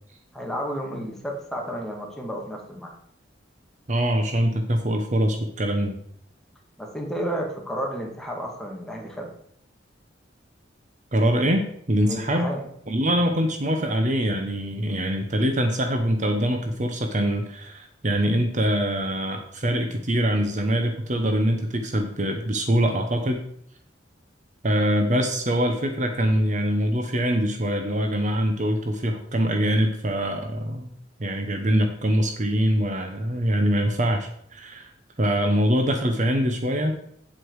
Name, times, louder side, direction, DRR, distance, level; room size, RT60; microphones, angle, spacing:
voice 1, 0.3-2.9 6.8-9.3 12.0-12.6, equal, ahead, -1 dB, 2.1 m, -32 dB
voice 2, 3.9-6.0 11.1-12.5 12.9-23.4 24.6-30.9 31.2-34.9 35.2-36.9, equal, 40° right, 5 dB, 1.0 m, -24 dB
8.5 x 8.0 x 4.8 m, 0.68 s
head